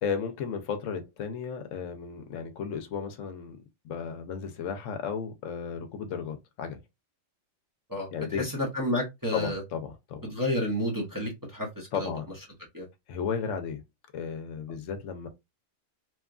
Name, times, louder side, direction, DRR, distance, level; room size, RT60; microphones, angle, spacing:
voice 1, 0.0-3.6 3.8-6.8 8.1-8.5 9.3-10.3 11.9-12.3 13.1-13.8 14.1-15.3, left 6 dB, 80° left, 0.9 m, -34 dB
voice 2, 7.9-9.6 10.2-12.1 12.7-12.9, left 1 dB, 20° right, 0.6 m, -30 dB
2.9 x 2.4 x 2.3 m
omnidirectional pair, 1.3 m